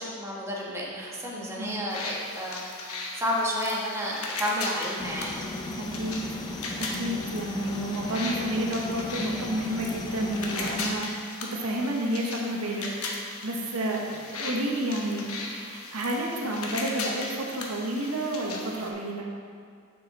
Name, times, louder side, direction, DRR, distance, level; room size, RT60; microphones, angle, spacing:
voice 1, 0.0-5.4, equal, 15° right, -5 dB, 1.2 m, -31 dB
voice 2, 1.4-1.8 5.8-6.4 6.8-19.3, right 1 dB, 80° right, 0 dB, 0.9 m, -30 dB
sound 1, 1.9-18.9, left 3 dB, 75° left, 1.0 m, -37 dB
sound 2, 5.0-11.0, left 2 dB, 20° left, 0.4 m, -36 dB
6.7 x 6.2 x 4.1 m, 2.2 s
head